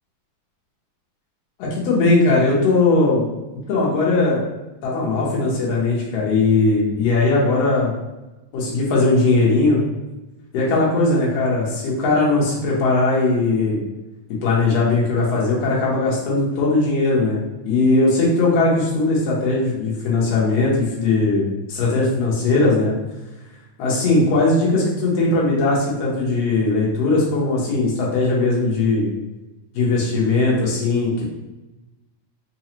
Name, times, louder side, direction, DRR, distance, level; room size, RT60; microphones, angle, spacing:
voice 1, 1.6-3.3 3.7-4.4 4.8-7.9 8.5-9.8 10.5-13.8 14.4-22.9 23.8-29.1 29.7-31.2, left 3 dB, 65° left, -4 dB, 1.9 m, -19 dB
4.8 x 2.4 x 2.9 m, 1.1 s
omnidirectional pair, 3.5 m